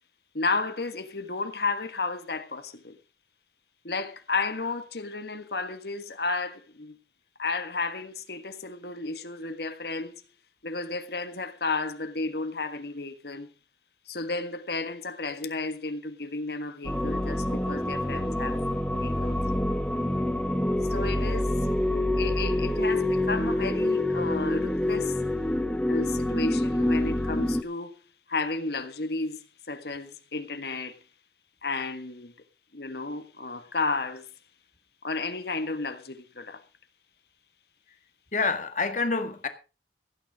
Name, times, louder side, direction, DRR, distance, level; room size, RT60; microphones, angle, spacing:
voice 1, 0.3-3.0 3.8-6.9 7.4-10.2 10.6-13.5 14.1-18.6 18.9-19.4 20.9-21.6 22.2-25.2 25.9-28.0 28.3-29.4 29.7-31.0 31.6-32.3 32.7-34.3 35.0-36.6, left 3 dB, 65° left, 1.5 m, -32 dB
sound 1, 16.8-27.6, left 1 dB, 5° left, 0.7 m, -27 dB
voice 2, 38.3-39.5, left 4 dB, 45° left, 1.8 m, -27 dB
16.0 x 9.5 x 4.9 m
head